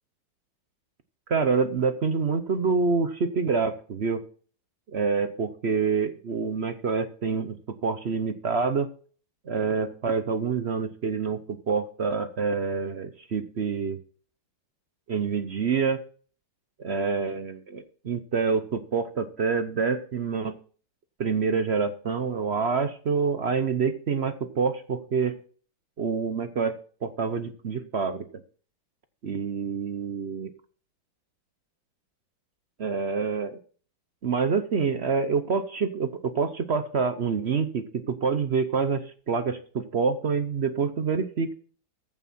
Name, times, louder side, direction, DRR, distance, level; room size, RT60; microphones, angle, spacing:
voice 1, 1.3-4.2 4.9-8.9 9.5-14.0 15.1-16.0 16.8-20.6 21.2-25.3 26.0-26.7 27.0-28.3 29.2-30.5 32.8-33.6 34.2-41.5, right 5 dB, 55° right, 10 dB, 0.7 m, -27 dB
14.5 x 7.4 x 4.3 m, 0.43 s
omnidirectional pair, 2.2 m